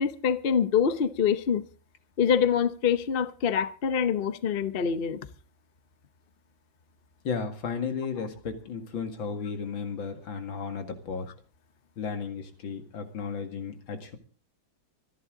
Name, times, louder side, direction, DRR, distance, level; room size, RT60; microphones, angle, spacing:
voice 1, 0.0-1.7 2.2-5.2, left 7 dB, 45° left, 0.7 m, -25 dB
voice 2, 7.2-11.3 12.0-14.2, left 5 dB, 80° left, 2.7 m, -34 dB
25.5 x 11.0 x 3.8 m
omnidirectional pair, 2.1 m